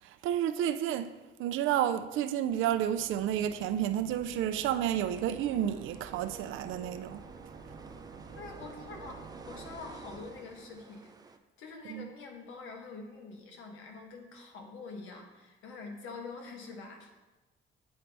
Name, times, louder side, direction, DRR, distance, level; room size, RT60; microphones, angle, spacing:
voice 1, 0.0-7.2 11.9-12.1, right 10 dB, 85° right, 0.4 m, -31 dB
sound 1, 2.4-10.9, right 5 dB, 50° right, 0.8 m, -50 dB
sound 2, 5.0-11.4, right 4 dB, 20° right, 0.4 m, -53 dB
voice 2, 8.4-17.1, left 4 dB, 90° left, 1.1 m, -46 dB
8.7 x 4.0 x 3.3 m
cardioid pair, 90°, 20 cm